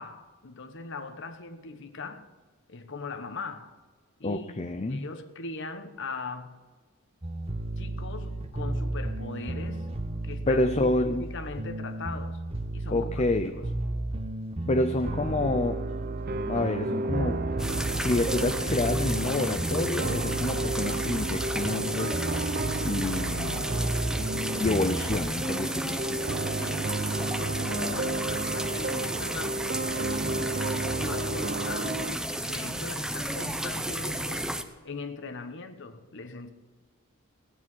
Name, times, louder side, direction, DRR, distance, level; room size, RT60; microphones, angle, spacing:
voice 1, 0.0-2.3 2.7-3.8 4.2-6.6 7.8-9.9 10.2-12.4 12.7-13.7 26.6-26.9 27.4-29.7 30.9-34.6 34.8-36.5, left 3 dB, 60° left, 1.1 m, -40 dB
voice 2, 4.2-5.1 10.5-11.2 12.9-13.6 14.7-15.9 16.5-17.5 18.0-22.1 22.4-22.5 22.8-23.7 24.6-26.3, left 2 dB, 30° left, 0.5 m, -28 dB
sound 1, 7.2-25.2, right 1 dB, 30° right, 1.0 m, -33 dB
sound 2, 15.0-32.2, right 2 dB, 45° right, 0.6 m, -33 dB
sound 3, 17.6-34.6, right 1 dB, 5° right, 0.7 m, -33 dB
17.0 x 10.0 x 5.6 m
head